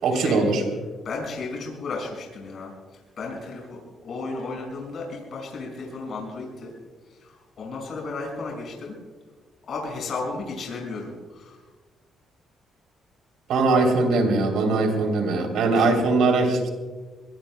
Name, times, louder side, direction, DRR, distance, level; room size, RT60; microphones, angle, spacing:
voice 1, 0.0-0.6 13.5-16.7, right 3 dB, 80° right, 4 dB, 3.3 m, -21 dB
voice 2, 1.0-2.7 3.2-6.7 7.2-9.0 9.7-11.6 15.7-15.9, left 3 dB, 60° left, -2 dB, 6.1 m, -34 dB
23.5 x 21.5 x 2.3 m, 1.4 s
cardioid pair, 90°, 0 cm